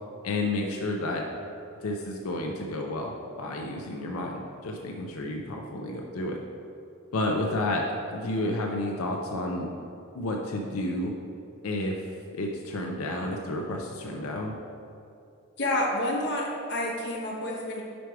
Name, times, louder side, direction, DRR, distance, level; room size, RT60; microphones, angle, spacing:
voice 1, 0.2-1.2 1.8-6.4 7.1-7.8 8.1-9.8 10.1-11.1 11.6-12.0 12.3-14.6, left 1 dB, 90° left, 1 dB, 0.5 m, -31 dB
voice 2, 15.6-17.8, left 1 dB, 50° left, -2 dB, 1.0 m, -29 dB
5.1 x 4.7 x 4.6 m, 2.7 s
head